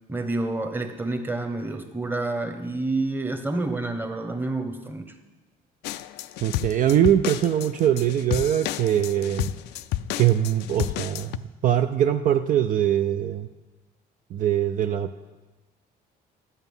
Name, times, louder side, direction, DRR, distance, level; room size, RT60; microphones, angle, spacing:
voice 1, 0.1-5.1, right 2 dB, 10° right, 6 dB, 1.1 m, -28 dB
sound 1, 5.8-11.4, left 14 dB, 80° left, 0.4 m, -31 dB
voice 2, 6.4-9.5 10.2-13.5 14.3-15.3, right 11 dB, 55° right, 8 dB, 0.5 m, -22 dB
11.5 x 8.2 x 5.5 m, 1.2 s
cardioid pair, 110°, 17 cm